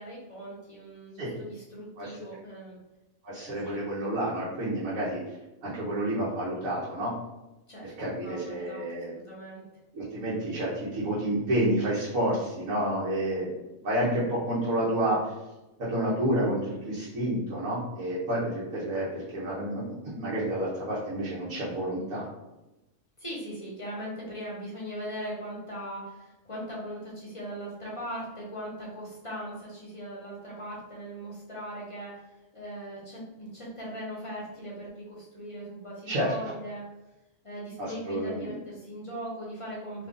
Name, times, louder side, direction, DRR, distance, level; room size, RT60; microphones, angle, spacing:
voice 1, 0.0-2.8 3.3-3.8 7.7-8.8 9.2-9.6 23.2-32.2 32.5-36.8 37.4-40.1, equal, 25° left, -5 dB, 0.8 m, -39 dB
voice 2, 3.2-5.2 5.6-7.1 7.8-9.1 9.9-13.5 13.8-15.3 15.8-22.3 36.1-36.3 37.8-38.5, right 1 dB, 85° right, -8 dB, 1.3 m, -29 dB
3.0 x 2.4 x 3.7 m, 0.97 s
omnidirectional pair, 1.4 m